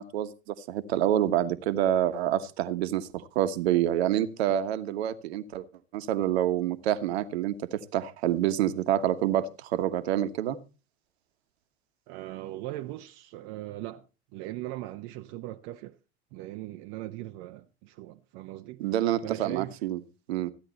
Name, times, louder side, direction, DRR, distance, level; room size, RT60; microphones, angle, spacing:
voice 1, 0.0-5.7 5.9-10.6 18.8-20.0 20.3-20.5, right 11 dB, 70° right, 1.3 m, -27 dB
voice 2, 12.1-14.1 14.3-16.0 16.3-18.8 19.2-19.8, right 15 dB, 55° right, 0.9 m, -39 dB
15.0 x 10.0 x 4.1 m
hypercardioid pair, 80°, 32 cm